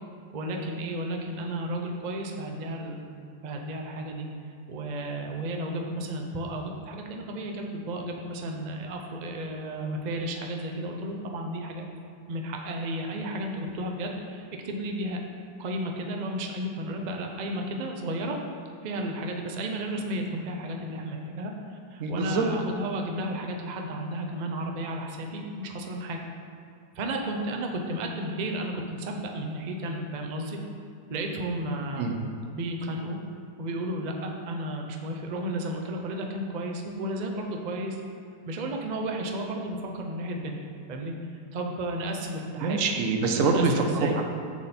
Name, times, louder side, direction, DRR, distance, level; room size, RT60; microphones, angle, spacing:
voice 1, 0.3-3.0 3.4-4.3 4.7-11.8 12.3-15.2 15.6-18.4 18.8-26.2 26.9-30.6 31.1-32.1 32.5-33.2 33.6-38.0 38.4-40.6 40.9-41.1 41.5-42.8 43.4-44.2, right 1 dB, 80° right, 2 dB, 0.4 m, -33 dB
voice 2, 22.0-22.4 32.0-32.1 42.6-43.8 44.1-44.2, right 4 dB, 60° right, 3 dB, 0.9 m, -25 dB
7.0 x 6.4 x 4.2 m, 2.4 s
omnidirectional pair, 1.8 m